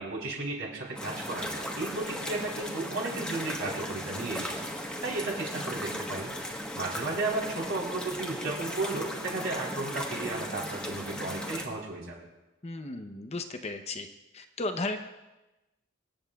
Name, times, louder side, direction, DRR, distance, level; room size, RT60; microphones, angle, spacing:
voice 1, 0.0-4.7 5.0-6.3 6.7-12.2, right 2 dB, 70° right, -3 dB, 3.9 m, -34 dB
sound 1, 1.0-11.7, equal, 5° left, 1.2 m, -37 dB
voice 2, 12.6-14.1 14.3-15.0, left 2 dB, 30° left, 6 dB, 0.7 m, -34 dB
25.5 x 8.8 x 2.3 m, 1.0 s
head